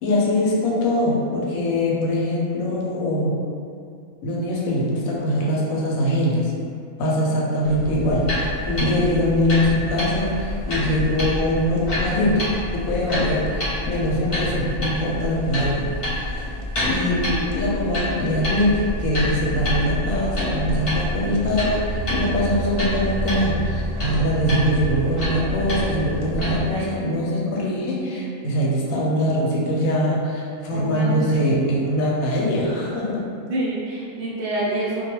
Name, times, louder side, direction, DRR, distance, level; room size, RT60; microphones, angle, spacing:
voice 1, 0.0-3.4 4.2-6.5 7.0-12.4 12.7-16.5 16.9-33.2, equal, 80° left, -4 dB, 1.0 m, -22 dB
sound 1, 7.6-26.7, left 1 dB, 50° left, 0.8 m, -27 dB
voice 2, 30.7-31.3 33.5-35.1, right 2 dB, 65° right, -6 dB, 0.6 m, -27 dB
2.3 x 2.2 x 2.9 m, 2.4 s
omnidirectional pair, 1.5 m